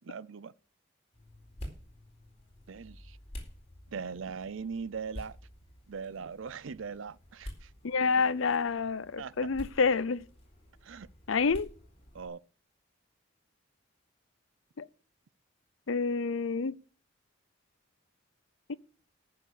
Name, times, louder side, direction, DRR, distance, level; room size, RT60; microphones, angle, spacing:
voice 1, 0.0-0.5 2.7-3.2 3.9-5.4 5.9-7.7 9.2-9.4 10.8-11.1 12.1-12.4, right 5 dB, 75° right, 0.5 m, -40 dB
sound 1, 1.1-12.3, equal, 30° left, 4.1 m, -49 dB
voice 2, 7.8-10.2 11.3-11.7 14.8-14.9 15.9-16.8 18.7-18.8, left 4 dB, 80° left, 0.7 m, -28 dB
14.0 x 6.8 x 6.5 m
head